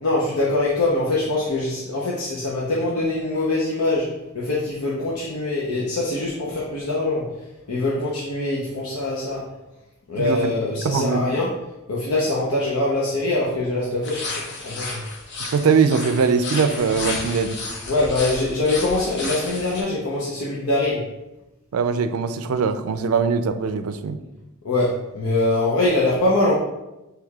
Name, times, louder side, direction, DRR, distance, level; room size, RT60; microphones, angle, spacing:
voice 1, 0.0-7.3 7.7-9.5 10.1-11.6 11.9-15.0 17.9-21.1 24.6-26.5, left 2 dB, 90° left, -5 dB, 0.7 m, -23 dB
voice 2, 10.2-10.5 10.8-11.2 15.5-17.6 21.7-24.2, right 5 dB, 75° right, 9 dB, 0.4 m, -21 dB
sound 1, 14.0-19.8, left 3 dB, 55° left, 0.9 m, -32 dB
6.4 x 3.3 x 2.3 m, 0.98 s
head